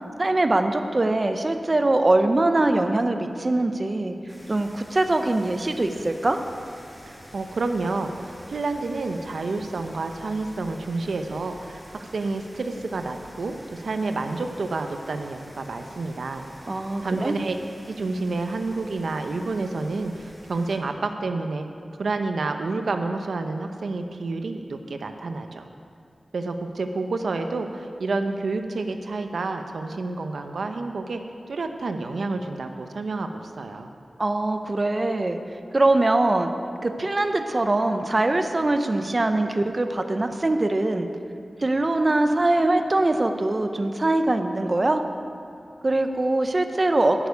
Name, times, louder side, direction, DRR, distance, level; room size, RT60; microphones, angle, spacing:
voice 1, 0.2-4.2 4.5-6.4 16.7-17.3 34.2-35.4 35.7-36.5 36.8-41.1 41.6-45.0 45.8-47.3, right 2 dB, 35° right, 7 dB, 0.7 m, -22 dB
sound 1, 4.3-20.8, equal, 5° left, 2.7 m, -47 dB
voice 2, 7.1-17.6 17.9-21.7 22.0-25.7 26.3-31.2 31.5-33.9, right 3 dB, 85° right, 6 dB, 0.7 m, -29 dB
11.0 x 7.0 x 9.4 m, 2.4 s
wide cardioid pair, 85°, 0 cm